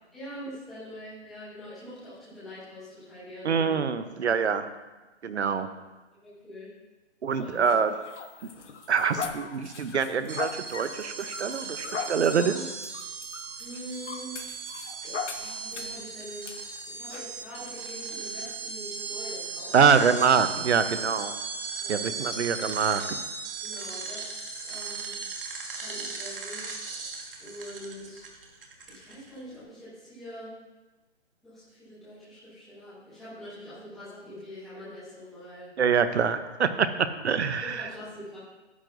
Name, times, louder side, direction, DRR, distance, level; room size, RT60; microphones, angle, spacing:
voice 1, 0.1-3.8 5.4-5.6 6.1-6.7 7.4-7.6 13.6-14.3 15.4-16.4 16.9-20.1 21.8-22.3 23.6-24.3 24.6-25.1 25.8-26.8 27.4-28.3 28.9-30.5 31.4-35.7 37.6-38.4, equal, ahead, -13 dB, 0.8 m, -44 dB
voice 2, 3.4-4.7 5.2-5.7 7.2-7.9 8.9-12.7 19.7-21.3 21.9-23.0 35.8-36.9 37.2-37.8, right 6 dB, 70° right, 11 dB, 0.8 m, -25 dB
sound 1, 7.3-16.0 16.4-16.6 17.1-17.3, left 6 dB, 80° left, 1.2 m, -39 dB
sound 2, 10.3-29.4, right 4 dB, 50° right, 1.6 m, -37 dB
9.6 x 9.3 x 2.6 m, 1.2 s
hypercardioid pair, 170°, 35 cm